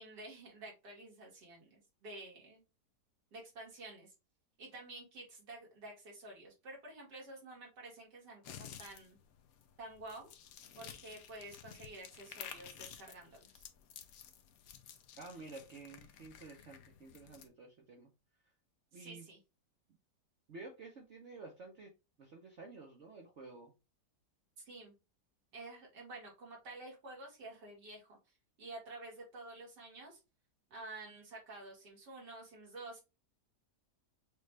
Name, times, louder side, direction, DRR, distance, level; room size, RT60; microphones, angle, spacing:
voice 1, 0.0-2.6 3.3-4.1 4.6-9.2 9.8-10.3 10.8-13.6 18.9-19.4 24.6-24.9 25.5-28.2 28.6-30.2 30.7-33.0, right 2 dB, 85° right, 2.6 m, -50 dB
sound 1, 8.4-17.5, left 9 dB, 65° left, 1.1 m, -53 dB
voice 2, 15.2-18.1 18.9-19.3 20.5-21.9 22.2-23.7, right 3 dB, 50° right, 1.0 m, -51 dB
6.5 x 2.4 x 3.3 m
omnidirectional pair, 1.8 m